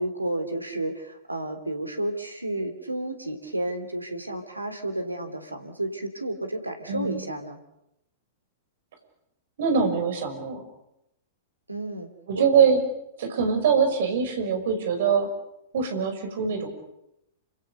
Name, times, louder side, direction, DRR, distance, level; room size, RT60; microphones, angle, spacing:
voice 1, 0.0-7.6 11.7-12.1 12.4-12.5, right 1 dB, 85° right, 7 dB, 3.4 m, -31 dB
voice 2, 6.9-7.2 9.6-10.6 12.3-12.8 13.2-15.3 15.7-16.7, right 6 dB, 55° right, 7 dB, 6.3 m, -23 dB
29.0 x 26.5 x 6.8 m, 0.84 s
figure-of-eight pair, 100°, 0 cm